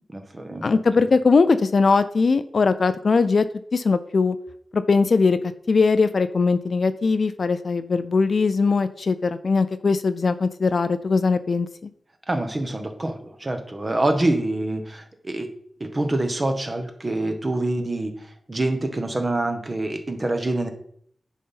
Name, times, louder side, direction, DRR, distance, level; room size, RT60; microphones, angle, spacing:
voice 1, 0.1-1.1 12.3-15.5 15.8-20.7, right 2 dB, 25° right, 6 dB, 1.0 m, -26 dB
voice 2, 0.6-3.4 3.7-4.4 4.7-5.4 5.7-11.7, left 4 dB, 50° left, 12 dB, 0.4 m, -20 dB
10.0 x 4.1 x 5.6 m, 0.66 s
wide cardioid pair, 160°, 0 cm